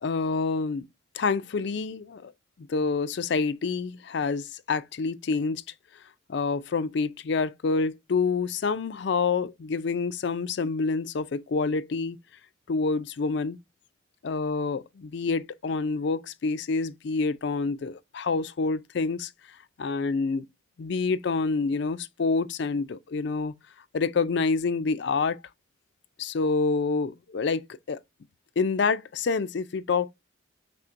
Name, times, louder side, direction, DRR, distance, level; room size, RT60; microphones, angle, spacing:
voice 1, 0.0-0.8 1.1-2.3 2.6-5.6 6.3-12.2 12.7-13.6 14.2-19.3 19.8-20.4 20.8-23.5 23.9-25.4 26.2-28.0 28.6-30.1, left 4 dB, 60° left, 0.4 m, -27 dB
5.8 x 3.4 x 2.5 m
head